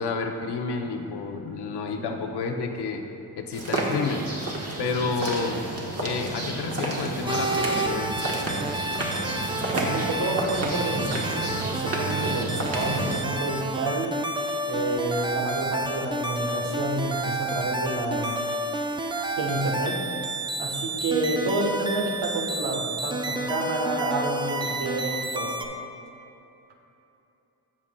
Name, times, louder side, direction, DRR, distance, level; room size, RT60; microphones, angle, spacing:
voice 1, 0.0-3.0 3.4-4.3 4.8-5.6 6.0-8.2, left 4 dB, 75° left, 4 dB, 0.8 m, -30 dB
sound 1, 3.5-13.2, right 2 dB, 35° right, 1.3 m, -30 dB
sound 2, 7.2-25.7, right 1 dB, 10° right, 0.5 m, -30 dB
voice 2, 9.7-11.2 11.6-14.2 14.7-18.4 19.4-20.0 20.6-25.6, right 2 dB, 80° right, 0 dB, 1.3 m, -29 dB
16.0 x 5.5 x 2.2 m, 2.9 s
cardioid pair, 75°, 40 cm